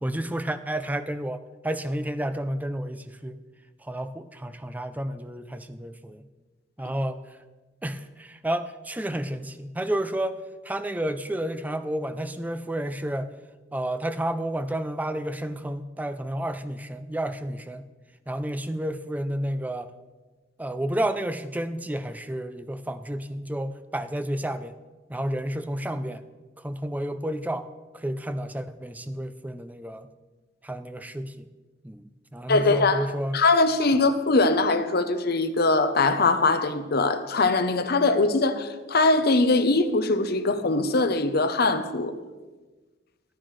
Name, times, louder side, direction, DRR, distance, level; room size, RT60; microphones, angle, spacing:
voice 1, 0.0-3.4 3.8-6.3 6.8-7.2 7.8-10.4 10.6-13.3 13.7-17.9 18.3-19.9 20.6-24.8 25.1-26.2 26.6-27.7 27.9-30.1 30.6-31.5 31.8-33.4, right 1 dB, 10° right, 11 dB, 0.4 m, -31 dB
voice 2, 32.5-33.1 33.3-42.1, left 3 dB, 55° left, 9 dB, 0.7 m, -22 dB
14.0 x 11.0 x 3.2 m, 1.3 s
head